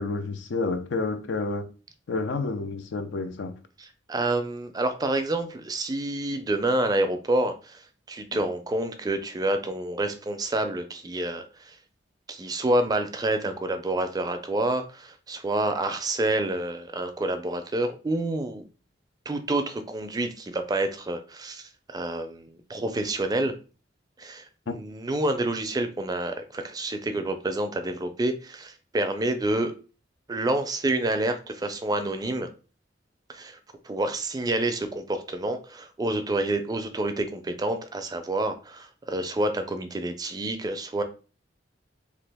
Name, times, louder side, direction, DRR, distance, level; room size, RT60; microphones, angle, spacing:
voice 1, 0.0-1.7 2.1-3.5 24.7-24.8, left 3 dB, 80° left, 0.5 m, -29 dB
voice 2, 3.8-7.8 8.1-11.7 12.3-18.6 19.3-23.5 24.2-29.7 30.3-32.5 33.3-33.6 33.8-41.0, right 2 dB, 20° right, 0.4 m, -28 dB
2.9 x 2.4 x 3.4 m
head